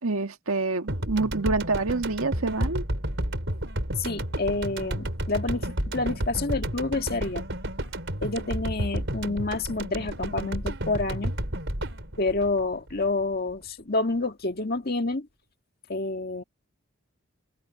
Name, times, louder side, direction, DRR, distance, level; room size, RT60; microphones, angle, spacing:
voice 1, 0.0-2.8, right 3 dB, 80° right, 1.8 m, -27 dB
sound 1, 0.9-13.3, right 1 dB, 60° right, 4.9 m, -31 dB
voice 2, 4.0-7.5 8.2-11.3 12.2-15.3 15.9-16.4, left 3 dB, 45° left, 2.0 m, -28 dB
head